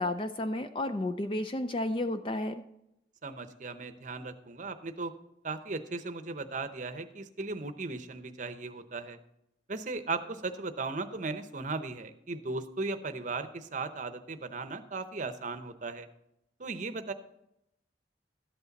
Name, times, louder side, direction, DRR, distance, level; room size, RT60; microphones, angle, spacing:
voice 1, 0.0-2.6, left 1 dB, 30° left, 9 dB, 0.4 m, -32 dB
voice 2, 3.2-5.1 5.4-9.2 9.7-16.1 16.6-17.1, right 3 dB, 45° right, 9 dB, 0.7 m, -37 dB
12.5 x 8.3 x 4.1 m, 0.81 s
head